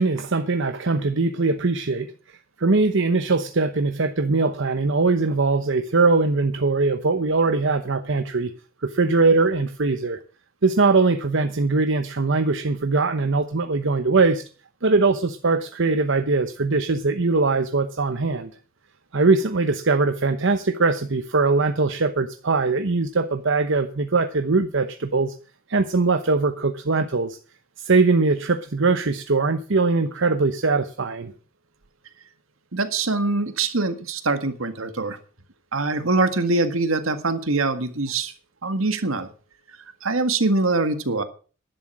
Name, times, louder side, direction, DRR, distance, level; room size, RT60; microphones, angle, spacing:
voice 1, 0.0-2.1 2.6-8.5 8.8-10.2 10.6-14.4 14.8-18.5 19.1-25.3 25.7-27.4 27.8-31.3, right 3 dB, 65° right, 8 dB, 1.0 m, -21 dB
voice 2, 32.7-35.2 35.7-38.3 38.6-39.3 40.0-41.2, right 3 dB, 80° right, 10 dB, 1.8 m, -23 dB
11.5 x 11.0 x 6.2 m, 0.38 s
head